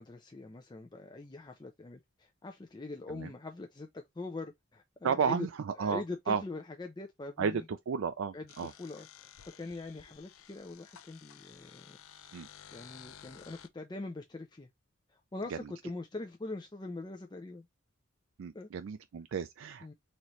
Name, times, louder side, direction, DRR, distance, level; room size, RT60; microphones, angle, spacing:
voice 1, 0.0-5.5 5.8-7.7 8.3-12.0 12.4-14.7 15.1-17.7 18.5-18.7 19.8-19.9, left 2 dB, 20° left, 0.4 m, -43 dB
voice 2, 5.0-6.4 7.4-8.7 12.3-12.5 15.5-15.6 18.4-19.9, right 6 dB, 70° right, 0.4 m, -33 dB
sound 1, 8.5-13.7, left 9 dB, 85° left, 0.5 m, -54 dB
4.1 x 3.0 x 3.1 m
head